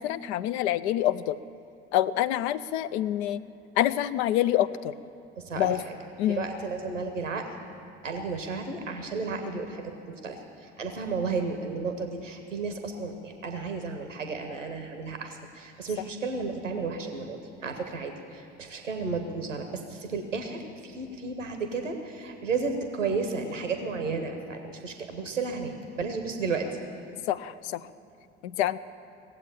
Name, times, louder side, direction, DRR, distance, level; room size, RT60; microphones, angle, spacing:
voice 1, 0.0-1.4 1.9-3.4 3.8-4.9 5.6-5.8 6.2-6.4 27.3-27.8 28.4-28.8, left 13 dB, 65° left, 15 dB, 0.5 m, -26 dB
voice 2, 5.4-5.9 6.3-7.5 8.0-26.7, right 4 dB, 90° right, 6 dB, 0.9 m, -33 dB
18.0 x 7.8 x 9.0 m, 2.7 s
figure-of-eight pair, 60°, 37 cm